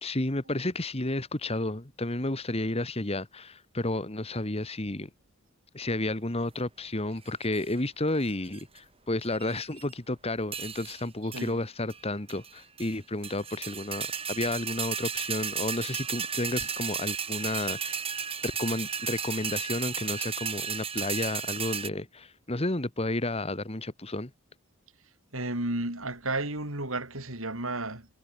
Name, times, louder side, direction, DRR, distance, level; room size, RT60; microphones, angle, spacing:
voice 1, 0.0-5.1 5.7-18.0 18.4-24.3, left 2 dB, 30° left, 1.8 m, -32 dB
sound 1, 7.3-7.7 8.3-8.8 9.2-9.9 10.5-11.0 11.3-11.5 11.9-12.0 12.3-12.9 13.2-21.9, right 7 dB, 30° right, 6.4 m, -34 dB
voice 2, 25.3-28.1, right 2 dB, 80° right, 7.2 m, -32 dB
head